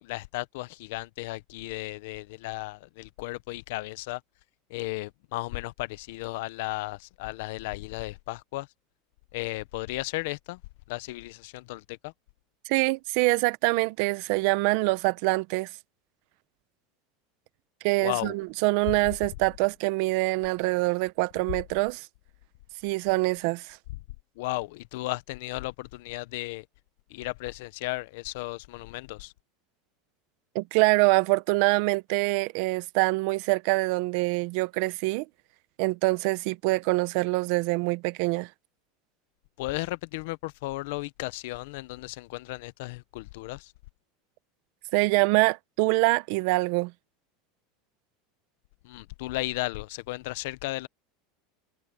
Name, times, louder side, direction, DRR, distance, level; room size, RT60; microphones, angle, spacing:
voice 1, 0.0-4.2 4.7-8.7 9.3-10.6 10.9-12.1 18.0-18.3 24.4-26.6 27.1-29.3 39.6-43.7 48.8-50.9, left 20 dB, 70° left, 0.9 m, -35 dB
voice 2, 12.7-15.7 17.8-22.1 22.8-23.8 30.5-35.3 35.8-38.5 44.9-46.9, right 23 dB, 65° right, 1.0 m, -25 dB
supercardioid pair, 125°, 0 cm